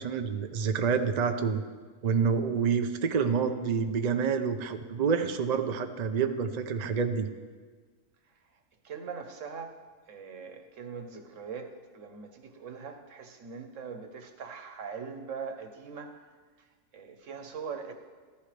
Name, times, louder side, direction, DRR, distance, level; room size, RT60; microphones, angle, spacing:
voice 1, 0.0-1.6 2.0-7.3, right 6 dB, 80° right, 7 dB, 0.3 m, -28 dB
voice 2, 8.8-9.7 10.1-16.3 16.9-17.9, right 5 dB, 60° right, 6 dB, 1.3 m, -41 dB
14.5 x 11.5 x 3.4 m, 1.5 s
omnidirectional pair, 1.6 m